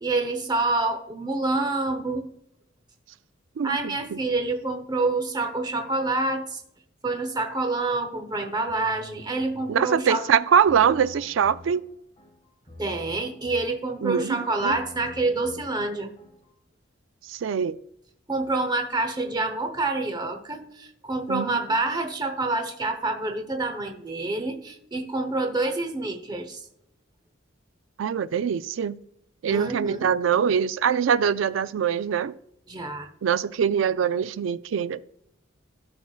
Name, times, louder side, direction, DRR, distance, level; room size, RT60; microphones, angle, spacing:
voice 1, 0.0-2.3 3.6-6.6 7.0-10.2 12.8-16.1 18.3-26.6 29.5-30.1 32.7-33.1, right 2 dB, 20° right, 0.8 m, -27 dB
voice 2, 3.6-4.2 9.7-11.8 14.0-14.8 17.3-17.8 21.3-21.6 28.0-29.0 29.4-32.4 33.2-35.0, right 7 dB, 70° right, 0.3 m, -23 dB
sound 1, 8.7-16.6, left 1 dB, 25° left, 1.6 m, -48 dB
12.0 x 5.8 x 2.4 m
head